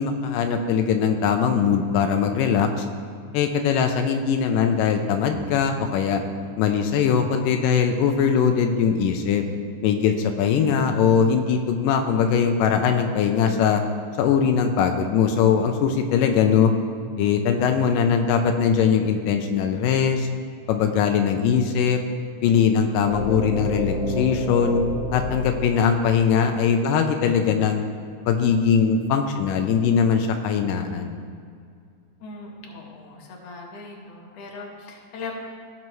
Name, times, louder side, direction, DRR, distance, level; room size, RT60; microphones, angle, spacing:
voice 1, 0.0-2.9 3.3-6.2 6.6-9.4 9.8-13.8 14.2-16.7 17.2-20.3 20.7-22.0 22.4-24.8 25.1-27.8 28.3-31.1, left 7 dB, 90° left, 5 dB, 2.3 m, -21 dB
sound 1, 23.0-26.9, left 1 dB, 70° right, 3.8 m, -30 dB
voice 2, 32.2-35.4, left 3 dB, 60° left, -1 dB, 2.2 m, -39 dB
16.5 x 6.3 x 3.1 m, 2.2 s
omnidirectional pair, 3.8 m